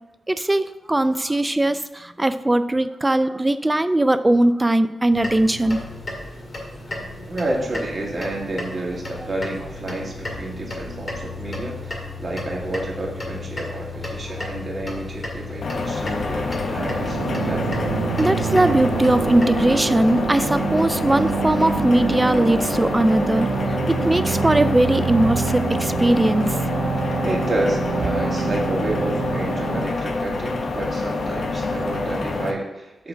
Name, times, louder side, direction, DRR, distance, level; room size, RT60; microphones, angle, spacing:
voice 1, 0.3-5.8 14.4-14.5 16.2-16.3 18.2-26.6, right 1 dB, 15° right, 12 dB, 0.4 m, -20 dB
sound 1, 5.1-19.5, left 2 dB, 35° left, 1.9 m, -34 dB
voice 2, 7.3-17.8 27.2-33.1, right 1 dB, 45° right, -3 dB, 2.2 m, -29 dB
sound 2, 15.6-32.5, left 3 dB, 60° left, 0.9 m, -27 dB
sound 3, 16.8-29.8, right 6 dB, 85° right, 0.4 m, -26 dB
7.9 x 3.7 x 6.2 m, 1.0 s
cardioid pair, 80°, 0 cm